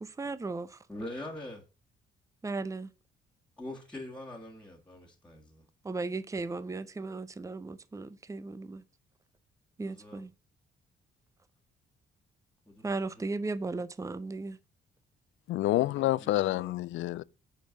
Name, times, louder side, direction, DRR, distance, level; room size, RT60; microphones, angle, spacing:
voice 1, 0.0-0.8 2.4-2.9 5.8-8.8 9.8-10.3 12.8-14.6, right 3 dB, 15° right, 0.6 m, -36 dB
voice 2, 0.9-1.6 3.6-5.7 9.8-10.2 12.7-13.3 15.9-16.7, left 1 dB, 5° left, 1.8 m, -44 dB
voice 3, 15.5-17.2, left 15 dB, 75° left, 0.4 m, -28 dB
6.9 x 4.6 x 5.7 m
cardioid pair, 90°, 20 cm